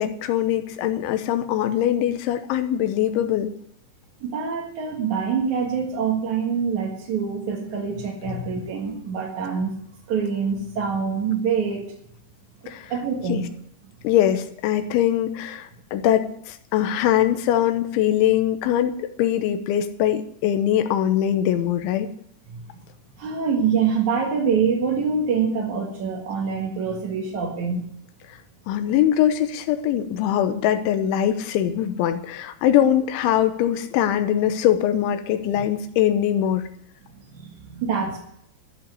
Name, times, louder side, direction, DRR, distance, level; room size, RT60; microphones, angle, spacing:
voice 1, 0.0-3.5 8.3-8.4 12.7-12.9 13.3-13.4 14.0-22.1 28.7-36.7, left 11 dB, 80° left, 9 dB, 3.3 m, -22 dB
voice 2, 4.2-9.7 10.1-11.9 12.9-13.5 22.5-22.8 23.2-27.8 37.1-38.2, right 6 dB, 55° right, -2 dB, 2.4 m, -25 dB
13.5 x 5.9 x 9.7 m, 0.72 s
omnidirectional pair, 5.3 m